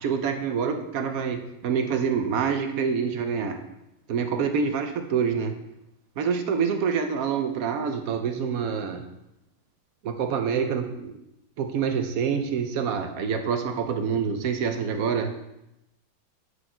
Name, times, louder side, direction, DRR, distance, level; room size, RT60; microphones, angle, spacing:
voice 1, 0.0-3.6 4.1-5.5 6.2-9.0 10.0-11.1 11.6-15.4, right 6 dB, 65° right, 5 dB, 0.9 m, -26 dB
9.9 x 4.5 x 4.3 m, 0.89 s
omnidirectional pair, 2.1 m